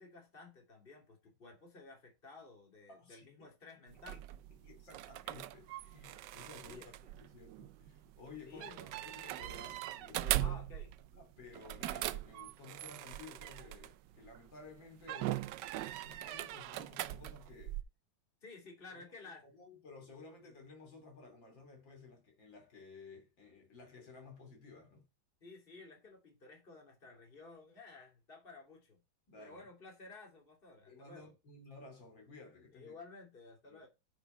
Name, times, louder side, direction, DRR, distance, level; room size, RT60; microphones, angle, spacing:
voice 1, 0.0-4.2 6.6-7.1 8.4-9.5 10.4-10.9 18.4-19.4 25.4-29.0 29.4-31.3 32.7-33.9, left 3 dB, 25° left, 3.1 m, -54 dB
voice 2, 2.9-3.5 4.6-6.8 7.2-8.7 9.0-10.6 11.1-15.5 15.9-17.8 18.9-19.1 19.4-25.1 29.3-29.6 30.9-32.9 33.7-33.8, left 3 dB, 70° left, 3.6 m, -54 dB
sound 1, 3.9-14.4 15.0-17.8, right 14 dB, 70° right, 1.1 m, -41 dB
9.5 x 4.9 x 4.4 m
omnidirectional pair, 2.1 m